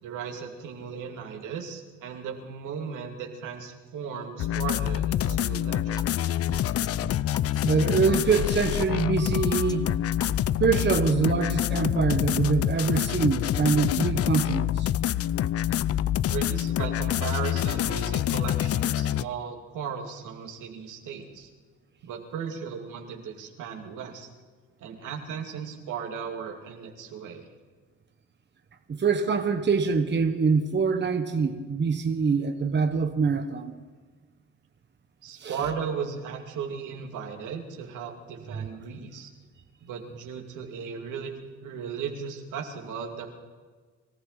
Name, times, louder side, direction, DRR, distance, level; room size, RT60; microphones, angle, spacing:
voice 1, 0.0-6.1 16.2-21.5 22.0-24.3 24.8-27.5 35.2-39.3 39.8-41.3 41.6-43.3, right 6 dB, 85° right, 2.5 m, -36 dB
sound 1, 4.4-19.2, left 11 dB, 50° left, 0.5 m, -26 dB
sound 2, 5.2-5.4 6.0-6.1 6.5-8.9 9.2-10.3 10.9-11.0, left 3 dB, 15° left, 0.7 m, -38 dB
voice 2, 7.6-9.9 10.6-14.9 28.9-33.7 35.4-35.6, right 5 dB, 35° right, 1.3 m, -24 dB
24.0 x 14.5 x 4.1 m
cardioid pair, 90°, 30 cm